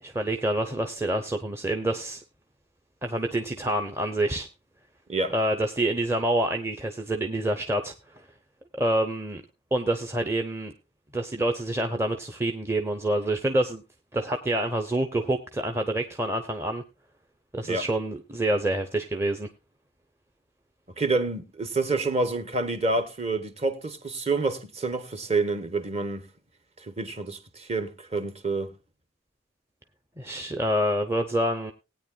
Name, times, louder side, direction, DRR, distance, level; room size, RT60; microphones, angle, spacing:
voice 1, 0.0-2.2 3.0-4.5 5.3-7.9 8.7-9.4 9.7-10.7 11.1-13.8 14.1-16.8 17.5-19.5 30.2-31.7, right 1 dB, 15° right, 0.7 m, -27 dB
voice 2, 21.0-26.3 26.9-28.7, right 3 dB, 30° right, 1.1 m, -28 dB
19.5 x 9.2 x 2.3 m
head